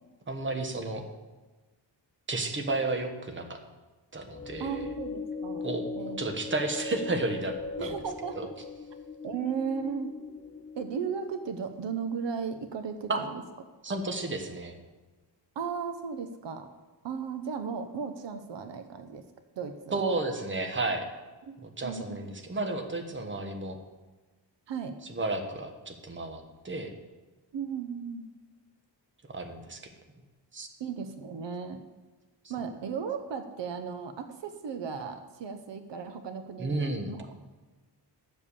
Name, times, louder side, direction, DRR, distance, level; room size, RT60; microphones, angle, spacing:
voice 1, 0.3-1.1 2.3-3.6 4.1-4.9 5.6-5.9 6.2-8.0 8.3-8.5 13.1-13.2 13.8-14.8 19.9-21.1 21.6-23.8 25.1-26.9 29.3-29.8 30.5-30.7 36.6-37.4, right 2 dB, 25° right, 5 dB, 1.2 m, -32 dB
sound 1, 4.2-11.6, left 4 dB, 15° left, 0.4 m, -39 dB
voice 2, 4.6-5.7 6.0-6.2 7.8-8.5 9.2-10.1 10.8-13.4 15.6-16.7 17.0-19.2 19.6-20.0 21.5-21.6 21.8-22.3 24.7-25.0 27.5-28.3 30.8-31.8 32.5-37.3, right 6 dB, 70° right, 8 dB, 0.9 m, -35 dB
10.5 x 7.5 x 6.9 m, 1.2 s
wide cardioid pair, 150°, 45 cm